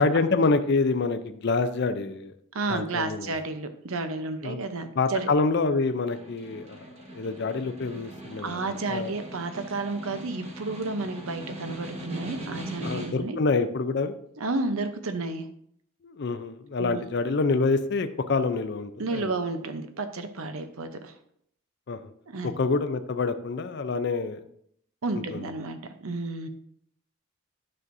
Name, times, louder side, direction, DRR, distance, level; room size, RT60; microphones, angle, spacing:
voice 1, 0.0-2.3 2.7-3.3 4.4-4.6 5.0-6.8 7.1-9.1 12.8-14.1 16.0-19.3 21.9-22.1 22.4-24.4 25.3-25.5, left 3 dB, 50° left, 10 dB, 0.5 m, -26 dB
voice 2, 2.5-5.3 8.4-13.4 14.4-15.4 16.8-17.0 19.0-21.1 22.3-22.5 25.0-26.5, right 3 dB, 75° right, 9 dB, 0.8 m, -31 dB
Snare drum, 5.9-13.4, right 1 dB, 30° right, 1.3 m, -40 dB
9.8 x 6.3 x 2.6 m, 0.69 s
head